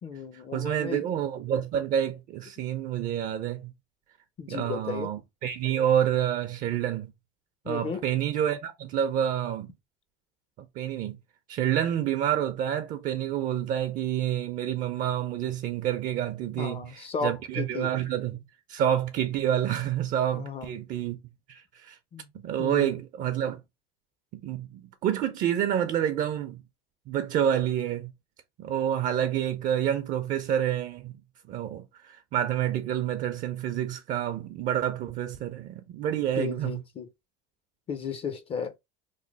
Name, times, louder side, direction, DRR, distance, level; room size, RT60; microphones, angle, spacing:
voice 1, 0.0-1.1 4.4-5.1 7.6-8.0 16.6-17.9 20.3-20.7 22.1-22.3 22.6-23.0 36.4-37.1 37.9-38.7, left 5 dB, 35° left, 0.5 m, -34 dB
voice 2, 0.5-3.7 4.5-7.1 7.7-9.7 10.6-11.2 11.5-18.4 18.7-21.2 21.5-22.0 22.3-23.6 24.3-26.6 27.1-28.1 28.6-31.1 31.5-36.8, right 10 dB, 50° right, 0.5 m, -28 dB
3.1 x 2.0 x 3.8 m
supercardioid pair, 115°, 18 cm